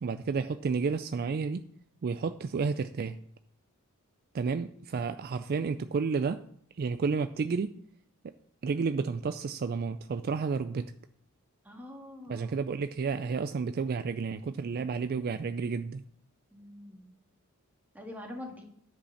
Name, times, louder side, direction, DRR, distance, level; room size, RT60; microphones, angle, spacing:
voice 1, 0.0-1.7 2.0-3.2 4.3-6.4 6.8-7.8 8.6-10.9 12.3-16.0, right 5 dB, 45° right, 0.3 m, -31 dB
voice 2, 11.6-12.6 16.5-17.1 17.9-18.6, left 1 dB, 10° right, 1.7 m, -44 dB
10.0 x 5.3 x 6.4 m
head